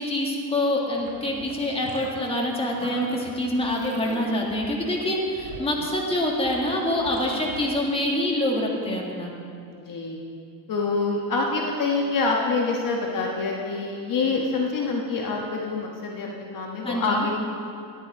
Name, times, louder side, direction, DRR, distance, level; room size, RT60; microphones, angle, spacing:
voice 1, 0.0-9.3 16.8-17.3, left 1 dB, 10° left, -2 dB, 2.0 m, -26 dB
sound 1, 0.9-2.5 2.8-7.6, right 4 dB, 70° right, 3.4 m, -42 dB
voice 2, 9.7-10.2 10.7-17.4, left 3 dB, 45° left, -1 dB, 1.5 m, -26 dB
12.5 x 10.5 x 4.9 m, 2.5 s
cardioid pair, 120°, 47 cm